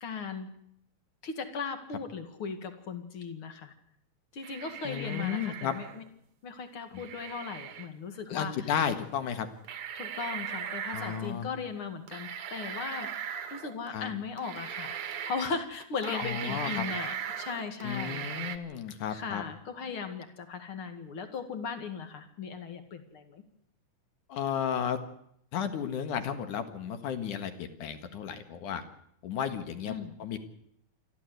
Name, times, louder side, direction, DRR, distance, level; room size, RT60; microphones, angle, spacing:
voice 1, 0.0-0.5 1.2-3.7 4.3-6.0 6.4-8.7 9.9-18.6 19.1-23.4 29.9-30.1, left 5 dB, 40° left, 8 dB, 2.5 m, -38 dB
sound 1, 4.4-6.1 7.0-7.9 9.0-9.1 9.6-11.3 12.1-13.9 14.4-15.5 15.8-18.6, right 8 dB, 55° right, 2.1 m, -39 dB
voice 2, 4.8-5.7 6.9-7.0 8.3-9.5 10.9-11.5 13.9-14.1 16.0-16.8 17.8-19.4 24.3-25.0 25.5-28.8 29.2-29.9 30.2-30.4, left 8 dB, 60° left, 9 dB, 3.0 m, -33 dB
28.0 x 12.5 x 8.0 m, 0.72 s
omnidirectional pair, 4.4 m